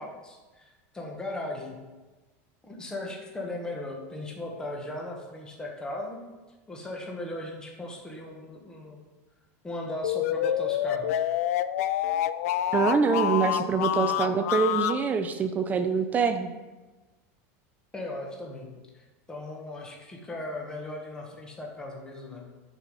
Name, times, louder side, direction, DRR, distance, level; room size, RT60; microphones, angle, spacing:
voice 1, 0.0-1.8 2.6-6.2 6.7-9.0 9.6-11.2 13.5-13.6 14.0-14.1 17.9-22.4, left 1 dB, 10° left, 0 dB, 1.3 m, -37 dB
sound 1, 10.0-15.0, left 12 dB, 90° left, 0.4 m, -27 dB
voice 2, 12.7-16.5, right 5 dB, 20° right, 8 dB, 0.5 m, -25 dB
11.0 x 4.9 x 5.3 m, 1.2 s
supercardioid pair, 155°, 8 cm